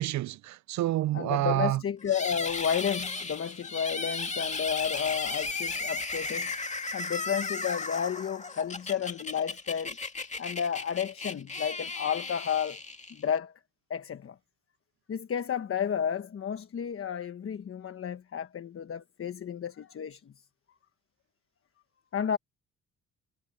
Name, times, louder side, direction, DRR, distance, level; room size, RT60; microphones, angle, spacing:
voice 1, 0.0-1.8, right 15 dB, 70° right, 0.5 m, -28 dB
voice 2, 1.1-6.5 6.9-10.0 10.4-12.8 13.1-13.5 13.9-14.4 15.1-20.3 22.1-22.4, left 8 dB, 45° left, 1.3 m, -32 dB
sound 1, 2.1-13.4, left 3 dB, 25° left, 2.3 m, -35 dB
cardioid pair, 90°, 30 cm